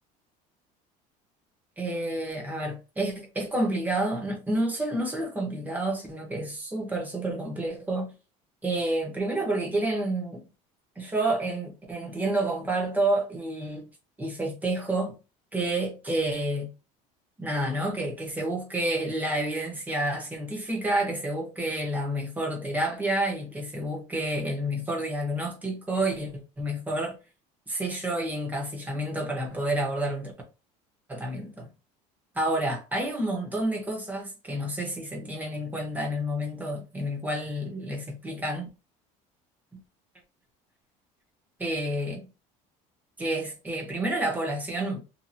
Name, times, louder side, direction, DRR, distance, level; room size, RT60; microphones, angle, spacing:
voice 1, 1.8-8.1 8.6-10.5 11.0-13.8 14.2-15.2 15.5-16.7 17.4-27.2 27.7-30.3 31.1-31.7 32.3-38.7 41.6-42.3 43.2-45.0, right 1 dB, 10° right, 0.9 m, -29 dB
2.8 x 2.6 x 2.6 m
cardioid pair, 150°, 15 cm